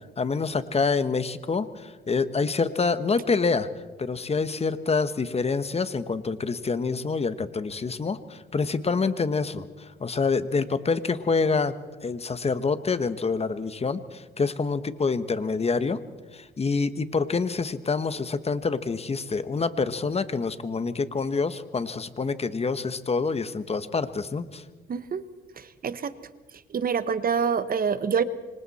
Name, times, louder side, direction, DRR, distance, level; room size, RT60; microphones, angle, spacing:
voice 1, 0.2-3.7 4.0-11.7 12.0-16.0 16.3-24.6, left 4 dB, 30° left, 12 dB, 1.2 m, -27 dB
voice 2, 24.9-25.2 25.6-26.1 26.7-28.2, right 6 dB, 45° right, 13 dB, 1.2 m, -26 dB
27.5 x 25.5 x 4.3 m, 1.3 s
cardioid pair, 90°, 20 cm